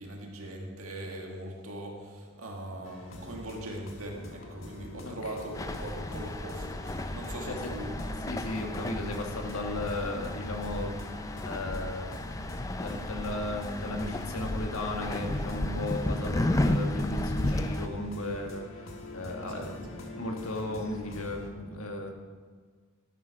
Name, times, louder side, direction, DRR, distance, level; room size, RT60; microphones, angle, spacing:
voice 1, 0.0-8.1 19.4-19.7, right 1 dB, 90° right, 0 dB, 1.9 m, -40 dB
sound 1, 2.8-21.5, left 1 dB, 75° left, 1.5 m, -44 dB
voice 2, 5.0-5.4 7.5-7.7 8.3-10.9 11.4-22.1, left 2 dB, 90° left, 3 dB, 1.5 m, -36 dB
sound 2, 5.5-17.9, left 1 dB, 15° left, 0.4 m, -33 dB
13.0 x 6.5 x 5.7 m, 1.5 s
head